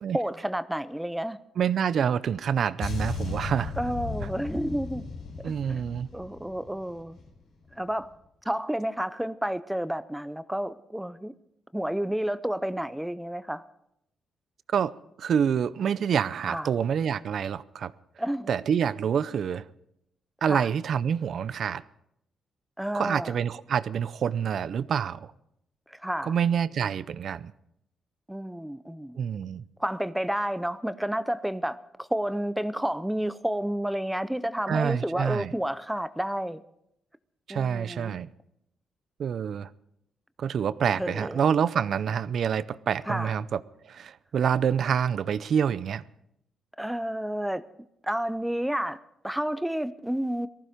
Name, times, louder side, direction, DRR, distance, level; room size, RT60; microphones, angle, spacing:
voice 1, 0.1-1.4 3.8-5.0 5.7-5.8 6.1-7.2 7.7-8.1 8.5-11.3 11.7-13.6 16.5-16.7 18.2-18.5 20.5-20.7 22.8-23.3 25.9-26.3 28.3-29.2 29.8-36.6 37.5-38.2 41.0-41.4 43.1-43.3 46.8-47.6 48.0-50.5, right 1 dB, 5° right, 0.5 m, -30 dB
voice 2, 1.6-3.7 5.4-6.1 14.7-14.9 15.2-17.9 18.5-19.7 20.4-21.8 22.9-25.3 26.2-27.5 29.2-29.6 34.7-35.5 37.5-38.3 39.2-39.7 40.4-43.6 43.9-46.0, right 8 dB, 60° right, 0.6 m, -27 dB
sound 1, 2.8-7.4 7.6-7.9, left 4 dB, 75° left, 4.5 m, -36 dB
19.0 x 14.5 x 5.1 m
cardioid pair, 120°, 0 cm